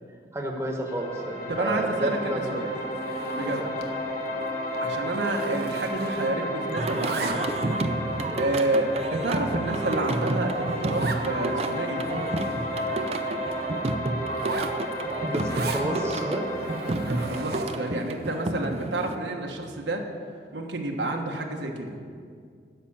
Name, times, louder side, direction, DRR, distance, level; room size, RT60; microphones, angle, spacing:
voice 1, 0.3-2.5 3.6-3.7 8.1-8.4 15.2-16.4, right 1 dB, 15° right, 1 dB, 1.2 m, -31 dB
orbit strings, 0.9-17.8, equal, 40° left, 2.3 m, -32 dB
voice 2, 1.5-2.7 3.3-3.6 4.8-7.6 8.4-12.2 17.0-20.0 20.5-22.0, right 2 dB, 80° right, 2 dB, 1.3 m, -29 dB
Zipper (clothing), 2.9-4.0 4.3-4.5 4.7-6.4 6.7-7.7 8.3-8.4 9.0-9.1 9.5-9.6 9.9-10.0 10.2-10.3 10.9-11.3 11.7-11.8 12.0-13.3 14.3-15.9 16.5-17.9, right 3 dB, 60° right, 0.9 m, -37 dB
Singing, 6.8-19.1, right 2 dB, 35° right, 0.5 m, -31 dB
12.5 x 5.8 x 8.7 m, 2.2 s
head